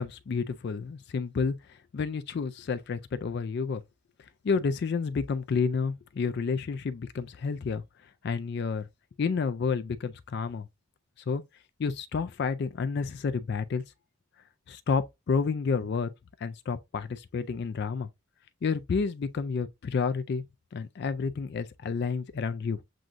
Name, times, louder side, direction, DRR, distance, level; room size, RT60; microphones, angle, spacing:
voice 1, 0.0-1.6 1.9-3.8 4.4-7.8 8.2-8.9 9.2-10.7 11.3-11.4 11.8-13.8 14.7-16.1 16.4-18.1 18.6-20.4 20.7-22.8, left 5 dB, 50° left, 0.3 m, -30 dB
7.6 x 2.6 x 2.4 m
head